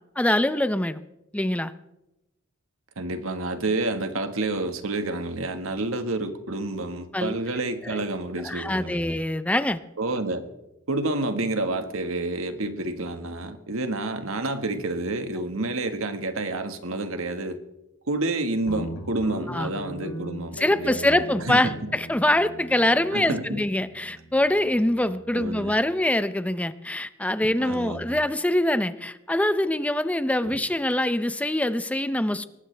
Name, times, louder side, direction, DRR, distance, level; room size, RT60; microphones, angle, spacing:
voice 1, 0.2-1.0 1.3-1.7 7.1-7.4 7.9-8.0 8.4-9.8 19.5-19.7 20.6-32.4, left 1 dB, 5° left, 0.5 m, -24 dB
voice 2, 3.0-9.1 10.0-10.5 10.9-17.6 18.1-21.9 23.1-23.6 25.3-25.7 27.6-28.2 30.4-30.6, right 2 dB, 80° right, 1.6 m, -29 dB
Guitar, 18.7-25.4, equal, 75° left, 2.6 m, -39 dB
22.5 x 19.0 x 3.4 m
head